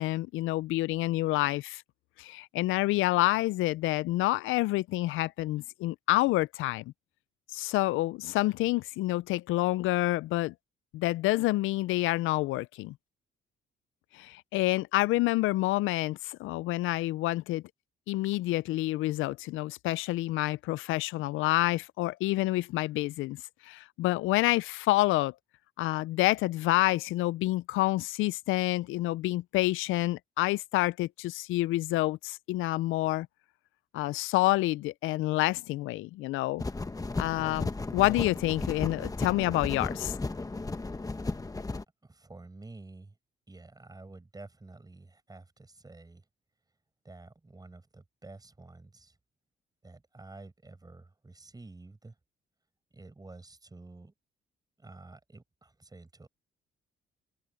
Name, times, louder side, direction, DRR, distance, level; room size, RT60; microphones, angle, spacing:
voice 1, 0.0-1.8 2.2-6.8 7.5-10.5 10.9-12.9 14.1-17.6 18.1-23.4 23.6-25.3 25.8-33.3 33.9-36.6 37.2-40.1, left 18 dB, 90° left, 0.4 m, -28 dB
sound 1, 36.6-41.8, left 3 dB, 15° left, 1.3 m, -34 dB
voice 2, 42.0-43.1 43.5-46.2 47.0-49.2 49.8-52.1 52.9-54.1 54.8-56.3, right 2 dB, 20° right, 6.4 m, -50 dB
cardioid pair, 90°, 20 cm